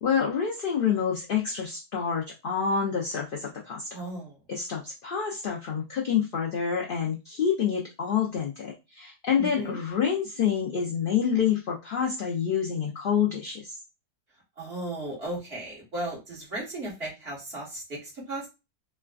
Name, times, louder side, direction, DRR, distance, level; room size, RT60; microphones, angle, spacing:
voice 1, 0.0-3.9 4.5-13.8, left 7 dB, 70° left, -1 dB, 0.5 m, -27 dB
voice 2, 3.9-4.4 9.4-9.8 14.6-18.5, right 1 dB, 40° right, -4 dB, 1.7 m, -35 dB
4.2 x 2.2 x 2.3 m, 0.26 s
omnidirectional pair, 1.6 m